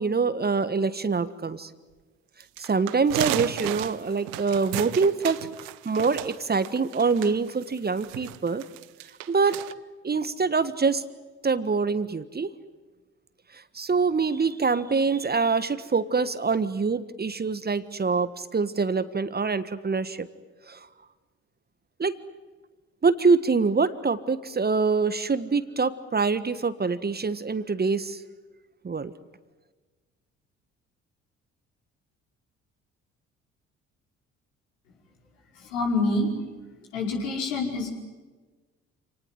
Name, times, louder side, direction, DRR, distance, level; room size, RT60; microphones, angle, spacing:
voice 1, 0.0-1.7 2.6-5.5 5.8-8.6 9.3-9.6 10.0-11.0 11.4-12.5 13.7-20.3 20.7-20.9 22.0-22.2 23.0-28.2 28.8-29.1, right 4 dB, 25° right, 13 dB, 1.5 m, -25 dB
sound 1, 2.4-9.7, right 16 dB, 65° right, 1.0 m, -34 dB
voice 2, 35.7-36.3 36.9-37.9, left 2 dB, 75° left, 0 dB, 5.3 m, -26 dB
28.0 x 19.0 x 9.5 m, 1.3 s
figure-of-eight pair, 50°, 37 cm